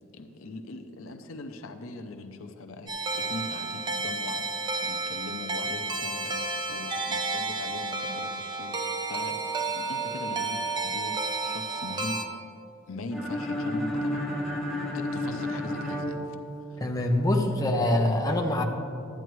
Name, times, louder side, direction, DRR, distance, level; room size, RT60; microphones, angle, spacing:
voice 1, 0.1-6.3 6.7-8.7 9.0-10.6 10.8-12.5 12.9-14.2 14.7-16.4 16.7-16.8 17.5-17.6, left 2 dB, 85° left, 6 dB, 0.6 m, -40 dB
sound 1, 2.9-12.2, right 3 dB, 20° right, 0.7 m, -31 dB
sound 2, 13.1-17.0, left 1 dB, ahead, 2.2 m, -32 dB
voice 2, 16.8-18.6, left 1 dB, 20° left, 1 dB, 0.7 m, -24 dB
12.0 x 9.1 x 3.1 m, 2.6 s
head